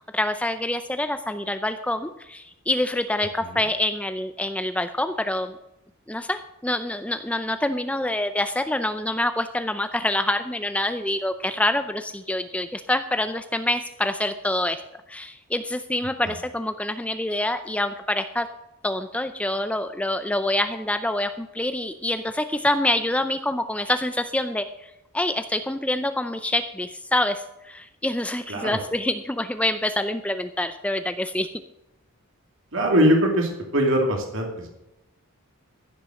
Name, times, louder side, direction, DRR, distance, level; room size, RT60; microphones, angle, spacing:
voice 1, 0.1-5.6 6.1-14.8 15.1-18.5 18.8-31.5, left 1 dB, 5° left, 9 dB, 0.5 m, -26 dB
voice 2, 32.7-34.7, equal, 60° right, 1 dB, 2.6 m, -21 dB
15.0 x 7.4 x 6.3 m, 0.89 s
head